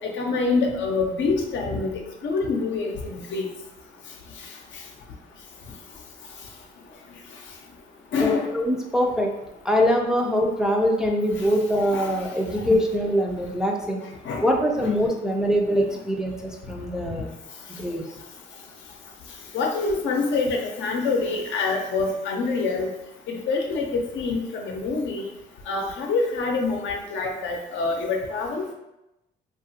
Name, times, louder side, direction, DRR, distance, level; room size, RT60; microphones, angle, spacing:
voice 1, 0.2-3.5 8.1-8.5 11.9-12.1 14.2-14.5 14.8-14.9 19.5-22.9 23.3-25.3 25.7-28.7, left 3 dB, 70° left, 1 dB, 0.6 m, -26 dB
voice 2, 8.2-9.3 9.6-14.0 14.4-17.3 17.8-18.1, equal, 5° right, 0 dB, 0.4 m, -23 dB
2.8 x 2.4 x 2.6 m, 0.91 s
cardioid pair, 90°, 20 cm